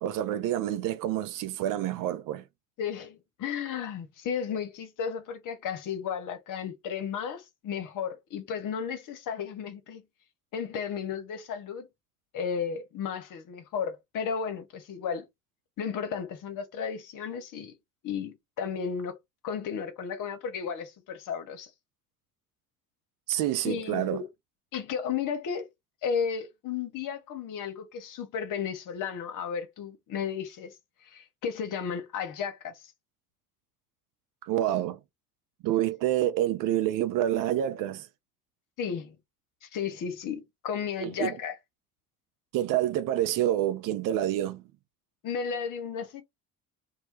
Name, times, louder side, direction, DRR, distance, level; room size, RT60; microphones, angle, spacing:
voice 1, 0.0-2.4 23.3-24.2 34.4-35.0 35.6-38.1 41.0-41.3 42.5-44.6, right 12 dB, 45° right, 0.5 m, -28 dB
voice 2, 2.8-10.0 10.5-11.9 12.3-15.3 15.8-17.7 18.0-19.2 19.4-21.7 23.6-24.2 24.7-25.7 26.0-30.7 31.0-32.7 38.8-39.2 39.6-41.6 45.2-46.2, left 7 dB, 45° left, 0.8 m, -34 dB
2.1 x 2.1 x 3.0 m
figure-of-eight pair, 60°, 45 cm